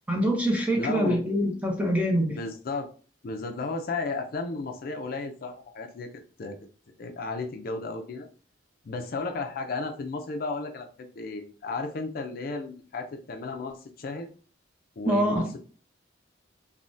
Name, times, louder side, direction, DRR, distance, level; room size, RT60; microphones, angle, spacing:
voice 1, 0.1-2.4 15.0-15.5, equal, 10° right, 1 dB, 0.6 m, -25 dB
voice 2, 0.8-1.3 2.3-2.9 3.2-6.1 6.4-6.6 7.0-8.3 8.8-14.3 15.0-15.7, left 3 dB, 50° left, 5 dB, 0.4 m, -34 dB
3.3 x 2.1 x 2.5 m, 0.38 s
head